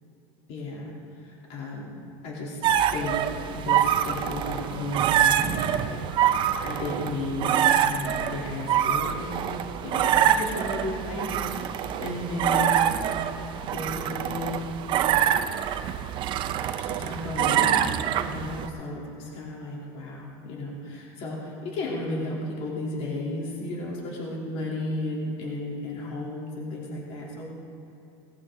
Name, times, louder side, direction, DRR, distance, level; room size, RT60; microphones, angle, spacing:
voice 1, 0.5-2.6 2.9-6.0 6.3-12.9 13.7-14.7 16.8-17.9 18.2-27.5, left 2 dB, 50° left, -3 dB, 2.9 m, -34 dB
sound 1, 2.6-18.7, right 10 dB, 40° right, 0.6 m, -25 dB
18.5 x 13.5 x 3.7 m, 2.9 s
cardioid pair, 150°, 13 cm